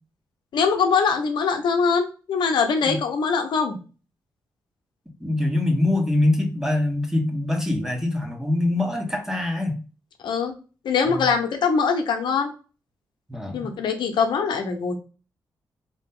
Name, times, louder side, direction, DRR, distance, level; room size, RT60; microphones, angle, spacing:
voice 1, 0.5-3.8 10.2-10.5 10.8-12.5 13.5-14.9, left 5 dB, 80° left, 5 dB, 0.9 m, -22 dB
voice 2, 5.2-9.8 11.1-11.2 13.3-13.7, left 2 dB, 5° right, 2 dB, 1.6 m, -24 dB
4.4 x 2.8 x 3.7 m, 0.35 s
cardioid pair, 65°, 8 cm